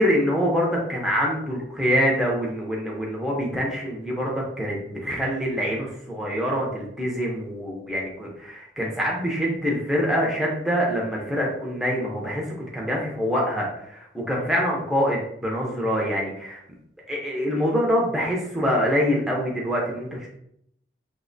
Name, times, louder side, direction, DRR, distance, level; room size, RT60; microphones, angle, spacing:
voice 1, 0.0-16.6 17.1-20.3, equal, ahead, -3 dB, 0.5 m, -25 dB
3.0 x 2.1 x 3.8 m, 0.73 s
head